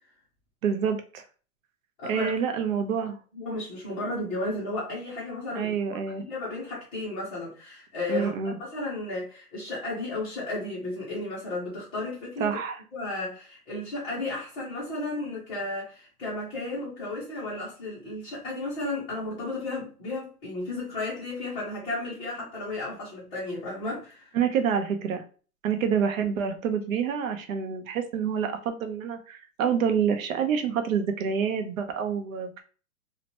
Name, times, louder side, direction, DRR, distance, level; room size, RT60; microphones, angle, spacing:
voice 1, 0.6-1.2 2.1-3.2 5.5-6.2 8.1-8.6 12.4-12.8 24.3-25.2 25.6-32.6, right 7 dB, 60° right, 0.7 m, -27 dB
voice 2, 2.0-2.3 3.3-5.7 6.2-8.3 8.6-12.6 12.9-24.3, left 2 dB, 10° left, 0.5 m, -33 dB
2.8 x 2.1 x 2.8 m
hypercardioid pair, 150°, 46 cm